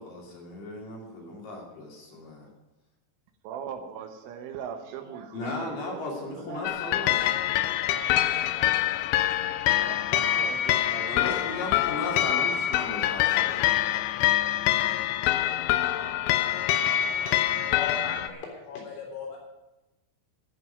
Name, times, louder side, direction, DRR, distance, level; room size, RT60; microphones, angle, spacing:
voice 1, 0.0-2.5 5.3-7.3 11.1-13.6, left 2 dB, 50° left, -1 dB, 3.7 m, -36 dB
voice 2, 3.4-6.1 6.4-6.7 7.4-7.5 7.9-8.7 9.0-11.3 13.2-13.8, right 7 dB, 75° right, 7 dB, 3.4 m, -41 dB
sound 1, 6.7-18.3, left 12 dB, 90° left, 2.5 m, -25 dB
voice 3, 17.1-19.4, left 5 dB, 70° left, -1 dB, 6.3 m, -38 dB
13.5 x 6.8 x 9.4 m, 1.0 s
omnidirectional pair, 5.9 m